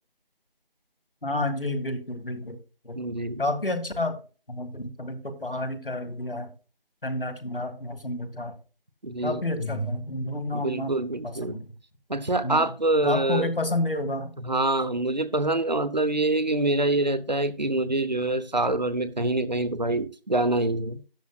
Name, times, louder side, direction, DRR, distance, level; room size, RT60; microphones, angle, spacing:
voice 1, 1.2-2.6 2.9-3.0 3.4-4.2 4.5-6.5 7.0-8.5 9.2-10.9 11.2-11.6 12.4-12.6 13.0-14.3, left 1 dB, 65° left, 9 dB, 2.1 m, -30 dB
voice 2, 3.0-3.4 9.0-9.6 10.5-11.6 12.1-13.5 14.4-21.0, right 2 dB, 45° right, 13 dB, 0.8 m, -25 dB
13.0 x 9.5 x 2.3 m, 0.36 s
figure-of-eight pair, 180°, 29 cm